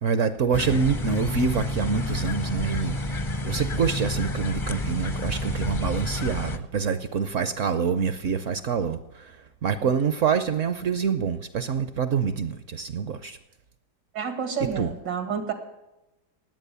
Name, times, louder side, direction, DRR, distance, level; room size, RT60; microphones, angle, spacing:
voice 1, 0.0-13.4 14.8-14.9, right 6 dB, 60° right, 12 dB, 0.8 m, -26 dB
sound 1, 0.5-6.6, left 1 dB, 30° left, 0.5 m, -29 dB
voice 2, 14.1-15.5, right 6 dB, 90° right, 7 dB, 2.5 m, -29 dB
18.5 x 8.5 x 6.8 m, 0.97 s
omnidirectional pair, 1.9 m